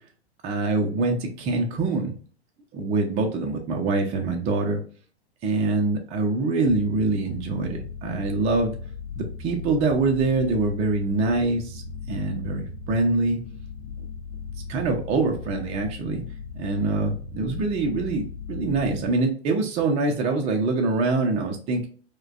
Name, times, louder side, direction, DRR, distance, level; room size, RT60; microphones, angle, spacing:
voice 1, 0.4-2.1 2.7-4.8 5.4-8.7 9.2-11.8 12.1-13.4 14.7-16.2 16.5-21.9, right 3 dB, 20° right, 2 dB, 0.5 m, -24 dB
sound 1, 6.7-19.1, left 5 dB, 60° left, 0.7 m, -38 dB
4.6 x 2.2 x 2.3 m, 0.41 s
figure-of-eight pair, 105°, 32 cm